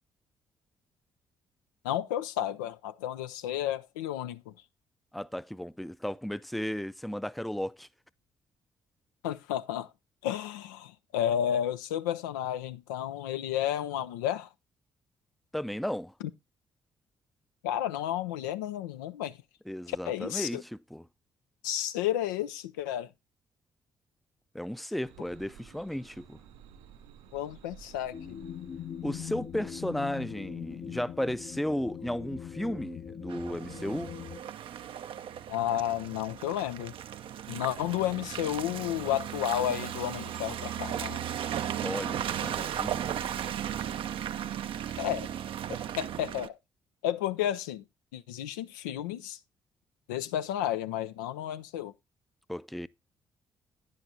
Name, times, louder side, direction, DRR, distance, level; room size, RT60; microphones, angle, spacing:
voice 1, 1.8-4.5 9.2-9.9 10.2-14.5 17.6-19.4 19.9-20.6 21.6-23.1 27.3-28.4 35.5-36.9 37.5-41.2 45.0-45.3 45.7-46.6 47.0-47.8 48.1-49.4 50.1-51.9, left 11 dB, 90° left, 0.4 m, -32 dB
voice 2, 5.1-7.9 15.5-16.1 19.7-21.0 24.5-26.4 29.0-34.1 41.8-43.1 52.5-52.9, equal, ahead, 0.4 m, -34 dB
sound 1, 25.0-30.3, right 8 dB, 85° right, 2.4 m, -54 dB
sound 2, 28.1-34.4, left 9 dB, 50° left, 0.8 m, -41 dB
Car passing by / Engine, 33.3-46.5, right 10 dB, 60° right, 0.5 m, -36 dB
10.5 x 9.6 x 2.7 m
hypercardioid pair, 45°, 10 cm